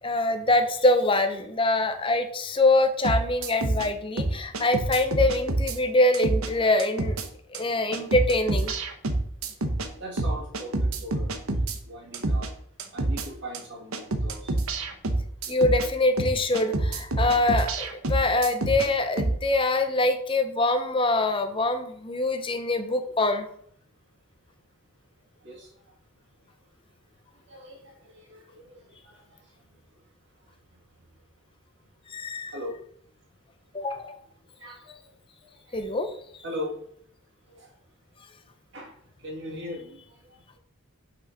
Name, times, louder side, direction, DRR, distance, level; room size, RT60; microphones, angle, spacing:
voice 1, 0.0-7.2 7.5-8.7 15.5-23.5 32.1-32.5 33.7-34.2 35.7-36.1, left 2 dB, 25° left, 7 dB, 0.7 m, -24 dB
sound 1, 3.0-3.9 4.2-5.8 6.1-6.5 6.8-7.3 7.5-7.6 7.9-9.9 10.2-11.8 12.1-12.5 12.8-13.3 13.5-13.6 13.9-15.9 16.2-18.9 19.2-19.4, right 2 dB, 75° right, 0.9 m, -27 dB
voice 2, 10.0-11.4 11.9-12.5 12.9-14.4 25.4-25.7 27.5-28.8 32.5-32.7 34.6-34.9 35.7-35.8 36.4-36.8 37.5-37.7 38.7-38.9 39.2-39.9, equal, 55° right, -1 dB, 2.4 m, -38 dB
6.2 x 5.5 x 5.6 m, 0.64 s
head